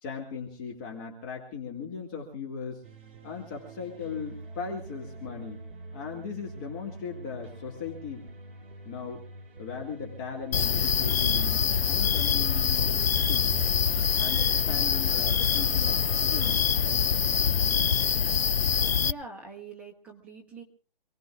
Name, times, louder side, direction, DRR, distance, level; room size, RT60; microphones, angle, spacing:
voice 1, 0.0-2.8 3.2-5.6 5.9-8.3 8.9-9.2 9.6-13.6 14.2-16.7, left 6 dB, 20° left, 0 dB, 1.9 m, -38 dB
sound 1, 2.8-18.9, right 3 dB, 60° right, 7.8 m, -45 dB
sound 2, 10.5-19.1, left 7 dB, 85° left, 0.7 m, -25 dB
voice 2, 19.0-20.6, right 4 dB, 5° right, 0 dB, 0.9 m, -44 dB
27.0 x 18.5 x 2.4 m, 0.39 s
hypercardioid pair, 160°, 30 cm